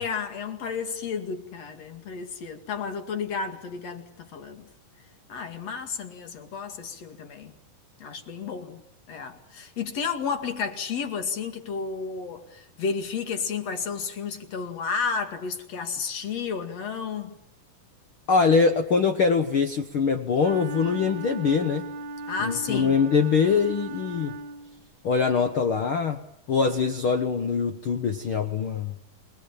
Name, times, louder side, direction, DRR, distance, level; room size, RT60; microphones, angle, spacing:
voice 1, 0.0-4.7 5.3-7.6 8.0-8.8 9.1-17.3 22.3-23.0, left 5 dB, 50° left, 3.1 m, -32 dB
voice 2, 18.3-21.9 22.4-24.3 25.0-26.2 26.5-28.9, left 5 dB, 70° left, 1.3 m, -23 dB
Wind instrument woodwind instrument, 20.3-24.9, right 2 dB, 35° right, 1.8 m, -37 dB
28.0 x 21.0 x 8.9 m
omnidirectional pair, 4.1 m